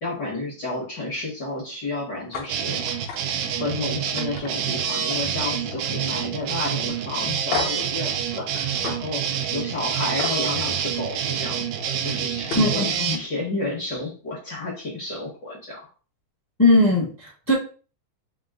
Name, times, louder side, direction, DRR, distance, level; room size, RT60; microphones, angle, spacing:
voice 1, 0.0-2.8 3.5-15.9, left 2 dB, 55° left, -5 dB, 1.2 m, -31 dB
sound 1, 2.3-2.5 2.9-3.2 3.6-3.8 4.2-5.3 5.6-6.0 6.5-6.6 7.5-7.9 8.8-9.0 10.2-10.4 12.1-12.2 12.5-12.8, left 5 dB, 70° left, 1.9 m, -31 dB
sound 2, 2.5-13.2, right 8 dB, 80° right, 1.7 m, -27 dB
voice 2, 12.5-13.2 16.6-17.5, left 2 dB, 15° left, -5 dB, 0.7 m, -19 dB
5.2 x 2.0 x 3.5 m, 0.38 s
omnidirectional pair, 3.6 m